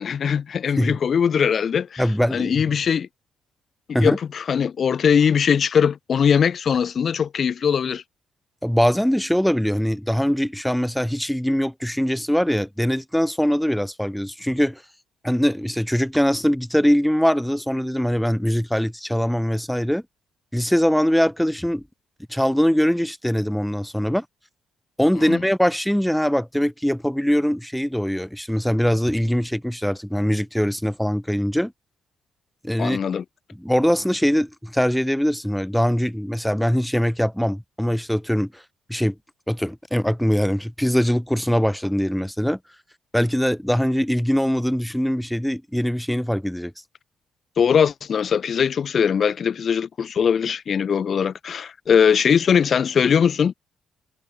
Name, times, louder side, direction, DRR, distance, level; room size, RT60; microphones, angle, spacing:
voice 1, 0.0-2.0 2.3-3.1 4.0-8.0 25.3-25.4 32.8-33.2 47.6-53.5, left 7 dB, 50° left, 1.3 m, -20 dB
voice 2, 2.0-2.8 3.9-4.2 8.6-14.8 15.2-20.0 20.5-21.8 22.3-24.2 25.0-31.7 32.6-33.0 33.5-38.6 38.9-39.1 39.5-42.6 43.1-46.7, equal, ahead, 1.5 m, -22 dB
cardioid pair, 90°, 0 cm